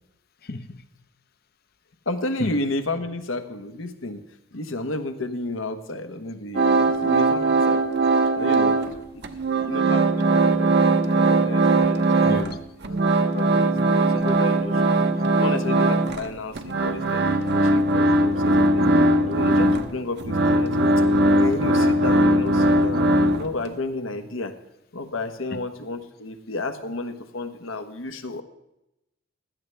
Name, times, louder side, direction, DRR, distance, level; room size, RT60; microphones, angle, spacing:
voice 1, 0.4-0.8 2.4-2.5 12.2-12.6 25.5-25.6, left 2 dB, 50° left, 11 dB, 0.8 m, -31 dB
voice 2, 2.1-4.2 4.5-8.0 8.4-8.8 9.1-12.4 12.9-14.9 15.4-18.9 19.2-20.9 21.4-24.5 24.9-28.4, left 2 dB, 75° left, 8 dB, 1.1 m, -32 dB
sound 1, 6.5-9.0 9.2-12.6 12.8-23.7, right 2 dB, 55° right, 0.9 m, -20 dB
16.0 x 12.5 x 3.4 m, 0.88 s
head